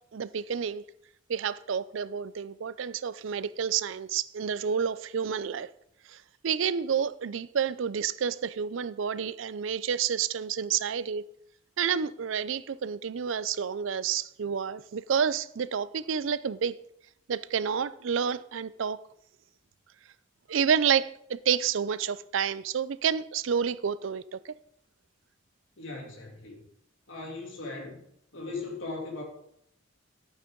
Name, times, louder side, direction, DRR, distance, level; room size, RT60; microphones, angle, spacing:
voice 1, 0.1-0.8 1.3-5.7 6.4-11.2 11.8-16.7 17.3-19.0 20.5-24.4, right 7 dB, 75° right, 17 dB, 0.4 m, -29 dB
voice 2, 25.8-26.6 27.1-28.0 28.3-29.2, left 3 dB, 75° left, 0 dB, 2.9 m, -38 dB
12.0 x 8.8 x 3.8 m, 0.73 s
head